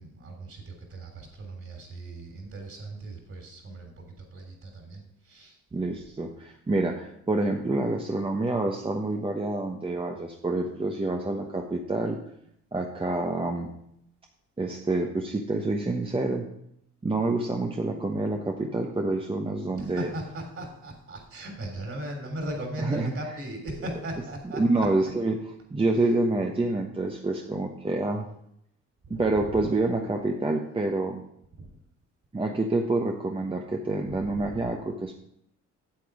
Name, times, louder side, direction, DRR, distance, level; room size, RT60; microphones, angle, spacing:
voice 1, 0.0-5.6 19.8-24.9 29.1-29.2 31.6-31.7 34.2-34.5, right 1 dB, 45° right, 2 dB, 3.5 m, -38 dB
voice 2, 5.7-12.2 12.7-13.7 14.6-16.4 17.0-20.1 22.8-23.4 24.6-28.3 29.1-31.2 32.3-35.1, right 2 dB, 20° right, 2 dB, 1.0 m, -27 dB
8.9 x 7.7 x 4.9 m, 0.73 s
cardioid pair, 90°, 30 cm